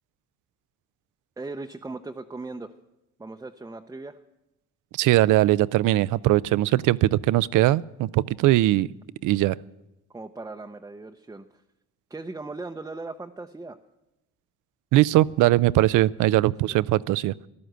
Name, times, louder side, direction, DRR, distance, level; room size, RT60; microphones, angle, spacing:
voice 1, 1.4-2.7 3.2-4.2 10.1-11.6 12.1-13.8 16.4-16.8, right 3 dB, 10° right, 5 dB, 0.6 m, -38 dB
voice 2, 5.0-8.9 9.2-9.6 14.9-17.3, right 16 dB, 85° right, 19 dB, 0.5 m, -20 dB
14.0 x 11.5 x 7.9 m, 0.94 s
cardioid pair, 90°, 30 cm